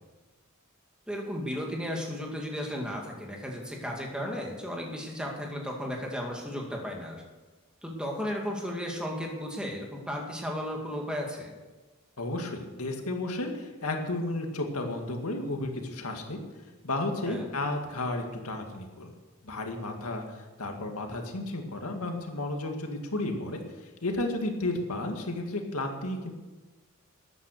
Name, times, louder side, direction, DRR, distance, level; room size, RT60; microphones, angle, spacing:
voice 1, 1.1-7.2 7.8-11.5 17.3-17.5, equal, 5° right, 0 dB, 2.2 m, -34 dB
voice 2, 12.2-16.4 16.8-19.1 19.4-26.3, left 2 dB, 90° left, 3 dB, 2.1 m, -33 dB
13.0 x 9.5 x 6.6 m, 1.2 s
head